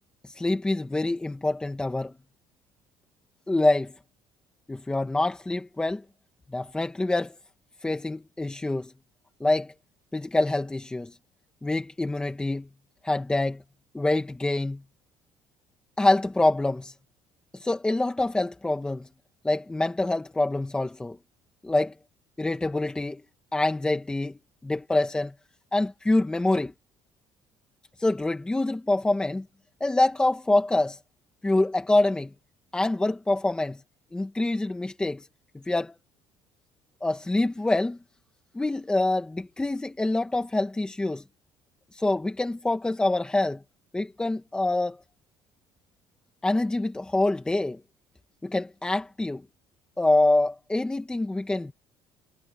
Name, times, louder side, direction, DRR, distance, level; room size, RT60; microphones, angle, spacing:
voice 1, 0.2-2.1 3.5-3.9 4.7-6.0 6.5-7.4 7.8-8.9 9.4-9.7 10.1-11.1 11.6-12.7 13.0-13.6 13.9-14.8 16.0-16.9 17.5-19.1 19.4-21.2 21.6-21.9 22.4-23.2 23.5-24.3 24.6-25.3 25.7-26.7 28.0-29.4 29.8-31.0 31.4-32.3 32.7-33.8 34.1-35.3 35.7-36.0 37.0-38.0 38.5-41.2 41.9-43.6 43.9-45.0 46.4-47.8 48.4-49.4 50.0-51.7, left 2 dB, 10° left, 1.8 m, -25 dB
cardioid pair, 145°, 9 cm